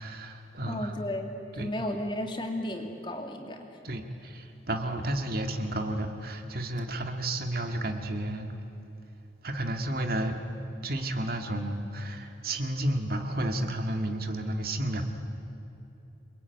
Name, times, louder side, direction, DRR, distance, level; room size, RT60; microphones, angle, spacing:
voice 1, 0.0-0.9 1.6-1.7 3.8-8.5 9.4-10.4 10.8-15.0, right 1 dB, 55° right, 5 dB, 2.0 m, -32 dB
voice 2, 0.7-3.8, left 1 dB, 25° left, 3 dB, 2.5 m, -34 dB
28.5 x 22.0 x 9.4 m, 2.9 s
head